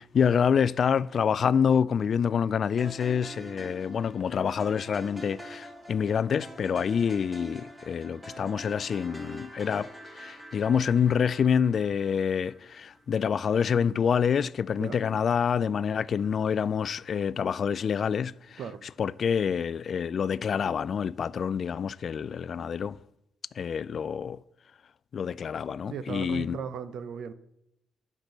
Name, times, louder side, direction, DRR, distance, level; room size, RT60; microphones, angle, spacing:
voice 1, 0.0-18.6 19.0-23.0 23.6-24.4 25.1-26.6, left 7 dB, 50° left, 0.3 m, -27 dB
sound 1, 2.8-13.0, equal, 5° right, 1.7 m, -45 dB
voice 2, 25.9-27.3, right 6 dB, 65° right, 0.7 m, -36 dB
10.5 x 6.0 x 6.6 m
cardioid pair, 90°, 0 cm